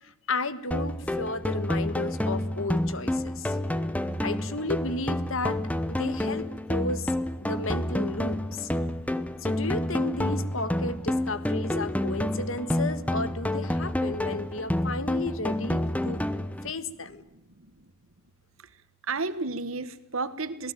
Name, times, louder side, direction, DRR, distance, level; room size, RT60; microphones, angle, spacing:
voice 1, 0.0-3.6 4.2-5.6 5.9-7.1 7.4-8.7 9.4-16.2 16.6-17.2, left 2 dB, 70° left, 13 dB, 1.6 m, -33 dB
sound 1, 0.7-16.7, left 1 dB, 5° left, 0.9 m, -29 dB
voice 2, 17.3-17.9 19.1-20.7, right 3 dB, 75° right, 13 dB, 1.5 m, -33 dB
27.5 x 17.5 x 9.1 m, 0.84 s
head